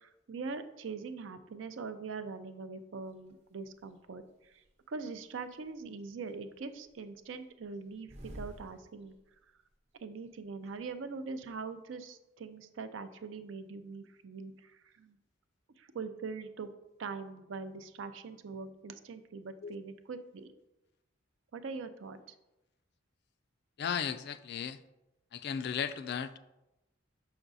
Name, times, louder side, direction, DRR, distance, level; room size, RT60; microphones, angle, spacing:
voice 1, 0.0-4.5 4.9-8.1 8.3-9.1 10.0-15.1 15.8-16.7 17.0-20.5 21.5-22.2, right 4 dB, 70° right, 10 dB, 0.5 m, -42 dB
sound 1, 3.2-3.3 3.8-4.7 5.2-6.1 6.3-9.5 9.7-9.8 10.0-10.8, equal, 35° right, 0.7 m, -50 dB
voice 2, 23.8-24.8 25.3-26.4, left 7 dB, 55° left, 11 dB, 0.3 m, -35 dB
6.2 x 5.9 x 2.6 m, 0.96 s
head